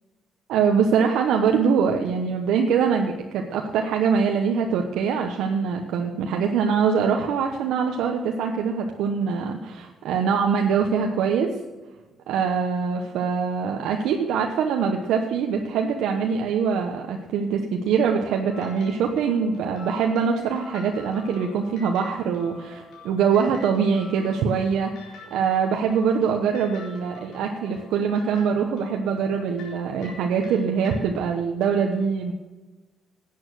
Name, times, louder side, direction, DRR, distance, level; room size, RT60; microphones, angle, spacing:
voice 1, 0.5-11.5 12.3-32.3, right 6 dB, 85° right, 2 dB, 1.0 m, -23 dB
sound 1, 18.5-30.9, left 3 dB, 80° left, 4.1 m, -47 dB
11.0 x 8.7 x 6.3 m, 1.2 s
cardioid pair, 90°, 0 cm